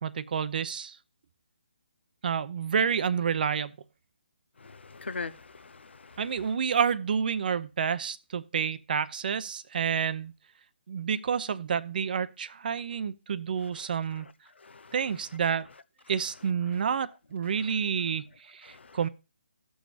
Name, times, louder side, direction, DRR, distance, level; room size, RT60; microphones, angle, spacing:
voice 1, 0.0-1.0 2.2-3.7 6.2-10.3 10.9-14.3 14.9-15.7 16.1-19.1, right 7 dB, 50° right, 0.7 m, -29 dB
voice 2, 4.6-6.2 14.6-14.9 18.7-19.0, left 4 dB, 85° left, 0.8 m, -41 dB
15.5 x 6.3 x 2.4 m
hypercardioid pair, 155°, 6 cm